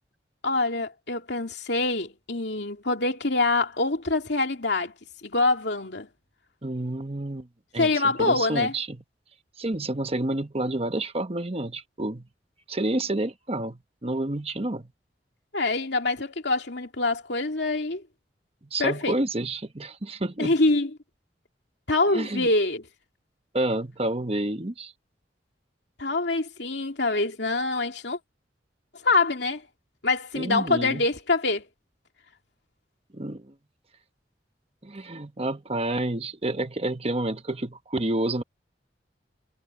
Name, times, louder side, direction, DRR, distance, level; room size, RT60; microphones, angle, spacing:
voice 1, 0.4-4.9 5.2-6.1 7.8-8.7 15.5-18.0 18.8-19.2 20.4-20.9 21.9-22.8 26.0-28.2 29.0-29.6 30.0-31.6, left 3 dB, 65° left, 2.7 m, -25 dB
voice 2, 6.6-7.5 7.7-9.0 9.6-12.3 12.7-14.9 18.7-20.5 22.1-22.5 23.5-24.9 30.3-31.0 33.1-33.5 34.8-38.4, right 1 dB, 35° right, 1.2 m, -29 dB
head